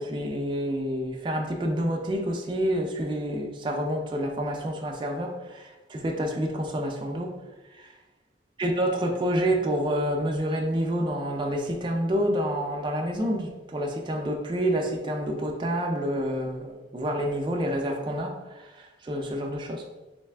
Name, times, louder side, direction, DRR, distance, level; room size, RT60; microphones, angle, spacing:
voice 1, 0.0-7.3 7.7-7.9 8.6-19.9, equal, 25° right, 1 dB, 0.3 m, -28 dB
3.2 x 2.6 x 3.3 m, 1.1 s
head